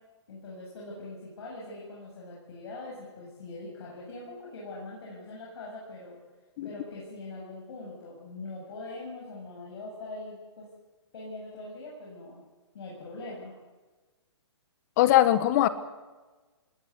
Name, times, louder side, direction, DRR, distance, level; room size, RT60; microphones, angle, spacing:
voice 1, 0.3-6.2 6.6-10.7 11.1-12.4 12.7-13.5, left 2 dB, 60° left, -4 dB, 7.9 m, -42 dB
voice 2, 15.0-15.7, left 13 dB, 35° left, 13 dB, 1.4 m, -21 dB
20.0 x 18.0 x 8.2 m, 1.3 s
hypercardioid pair, 145°, 15 cm